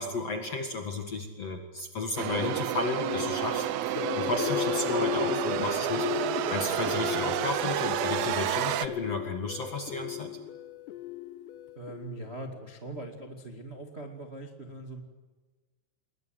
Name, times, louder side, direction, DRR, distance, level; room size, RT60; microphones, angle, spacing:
voice 1, 0.0-10.3, left 3 dB, 50° left, 5 dB, 1.9 m, -33 dB
sound 1, 2.2-8.9, right 12 dB, 80° right, 2.1 m, -30 dB
sound 2, 2.4-12.5, left 13 dB, 70° left, 3.1 m, -36 dB
voice 2, 11.7-15.0, right 2 dB, 45° right, 4 dB, 0.8 m, -41 dB
28.5 x 22.5 x 8.0 m, 1.3 s
omnidirectional pair, 5.6 m